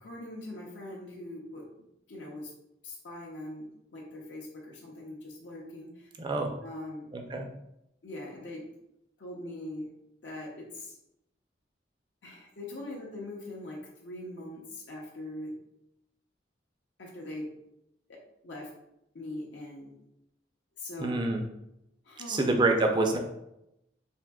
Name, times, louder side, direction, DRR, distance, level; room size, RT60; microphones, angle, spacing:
voice 1, 0.0-1.6 2.1-2.5 2.8-6.1 6.6-7.1 8.0-8.6 9.2-9.9 10.2-10.9 12.2-15.5 17.0-17.5 18.1-18.7 19.1-19.9 20.8-21.1 22.1-22.4, left 1 dB, 75° left, -3 dB, 0.6 m, -41 dB
voice 2, 6.2-6.5 7.1-7.5 21.0-21.4 22.3-23.2, right 2 dB, 25° right, 3 dB, 0.3 m, -26 dB
3.5 x 2.6 x 2.2 m, 0.84 s
head